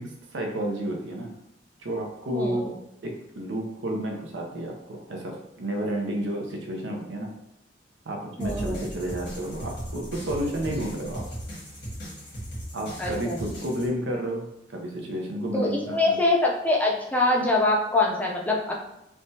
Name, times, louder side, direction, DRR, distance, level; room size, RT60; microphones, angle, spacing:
voice 1, 0.0-1.3 1.8-2.7 3.0-7.3 8.1-11.2 12.7-16.2, right 1 dB, 80° right, 1 dB, 0.6 m, -31 dB
voice 2, 2.3-2.7 8.4-9.0 13.0-13.3 15.5-18.7, left 2 dB, 10° left, -2 dB, 0.5 m, -24 dB
sound 1, 8.4-13.9, equal, 85° left, 1.2 m, -37 dB
3.3 x 2.2 x 2.7 m, 0.85 s
head